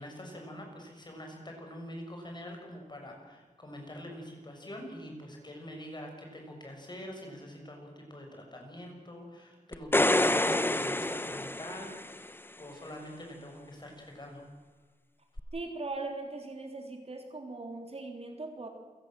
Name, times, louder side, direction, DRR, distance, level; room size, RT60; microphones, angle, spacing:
voice 1, 0.0-14.4, equal, 35° left, 2 dB, 6.7 m, -45 dB
sound 1, 9.7-12.3 15.4-15.5, left 1 dB, 15° left, 1.0 m, -27 dB
voice 2, 15.5-18.7, right 3 dB, 50° right, 4 dB, 3.5 m, -39 dB
28.5 x 17.0 x 7.7 m, 1.4 s
wide cardioid pair, 105°, 14 cm